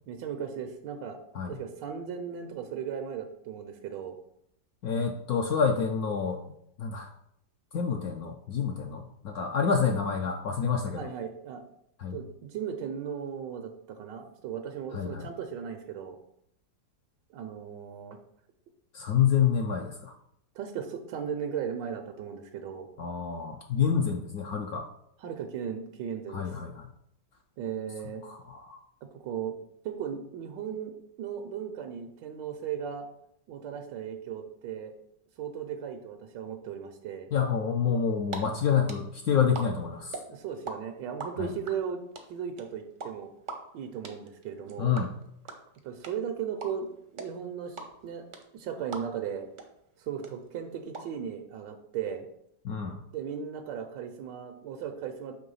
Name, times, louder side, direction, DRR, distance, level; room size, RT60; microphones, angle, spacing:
voice 1, 0.1-1.2 1.5-4.2 10.9-11.6 12.1-16.2 17.3-18.2 20.5-22.9 25.2-26.5 27.6-28.2 29.1-29.6 29.8-33.1 33.5-34.9 35.4-37.3 40.3-42.0 42.3-43.3 43.7-44.9 45.8-47.8 48.0-48.2 48.5-49.5 50.0-52.3 53.1-55.4, right 8 dB, 85° right, 5 dB, 1.3 m, -36 dB
voice 2, 4.8-6.4 6.8-7.1 7.7-11.1 12.0-12.2 14.9-15.3 18.9-20.1 23.0-24.8 26.3-26.8 28.2-28.8 37.3-40.2 41.4-41.5 44.8-45.1 52.6-53.0, left 7 dB, 70° left, 3 dB, 1.0 m, -28 dB
sound 1, 38.0-38.4 38.6-40.7 41.0-49.3 49.6-49.7 49.9-51.0, right 4 dB, 50° right, 0.6 m, -40 dB
6.6 x 3.3 x 5.4 m, 0.74 s
omnidirectional pair, 1.9 m